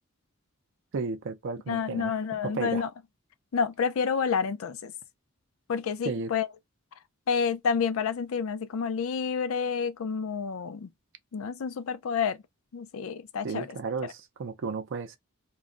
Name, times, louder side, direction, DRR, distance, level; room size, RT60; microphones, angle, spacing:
voice 1, 0.9-2.9 6.0-6.3 13.4-15.2, right 4 dB, 65° right, 0.5 m, -34 dB
voice 2, 1.7-2.9 3.5-4.9 5.7-6.5 7.3-10.9 11.3-12.4 12.7-13.7, left 6 dB, 75° left, 0.4 m, -29 dB
2.3 x 2.1 x 3.6 m
head